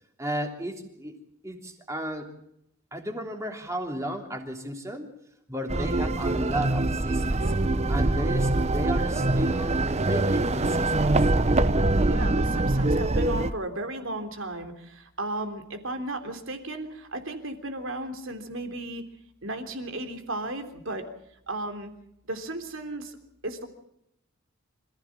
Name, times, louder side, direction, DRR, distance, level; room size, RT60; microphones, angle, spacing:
voice 1, 0.2-1.2 1.4-2.3 2.9-5.1 5.5-7.5 7.9-11.1, equal, 15° right, 3 dB, 3.2 m, -34 dB
sound 1, 5.7-13.5, right 2 dB, 30° right, 0.8 m, -24 dB
voice 2, 12.0-19.1 19.4-21.1 21.5-21.9 22.2-23.2 23.4-23.7, right 2 dB, 60° right, 6 dB, 3.4 m, -34 dB
26.5 x 15.5 x 7.6 m, 0.78 s
head